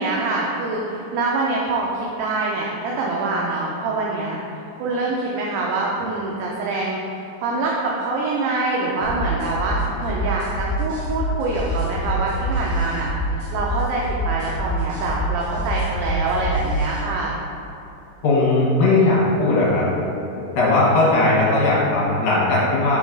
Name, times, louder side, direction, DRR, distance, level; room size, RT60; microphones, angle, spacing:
voice 1, 0.0-4.4 4.8-17.4, right 3 dB, 80° right, -3 dB, 2.1 m, -25 dB
sound 1, 9.0-17.0, equal, 60° right, 2.5 m, -26 dB
voice 2, 18.2-19.8 20.5-23.0, left 2 dB, 65° left, -6 dB, 2.7 m, -18 dB
5.9 x 5.1 x 3.8 m, 2.9 s
omnidirectional pair, 4.7 m